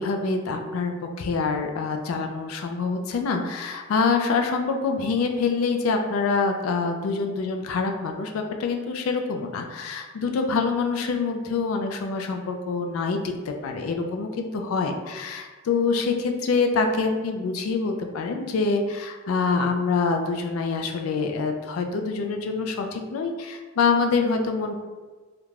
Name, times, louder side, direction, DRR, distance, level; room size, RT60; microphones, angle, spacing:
voice 1, 0.0-24.7, left 4 dB, 80° left, 4 dB, 0.3 m, -25 dB
2.4 x 2.2 x 3.1 m, 1.3 s
head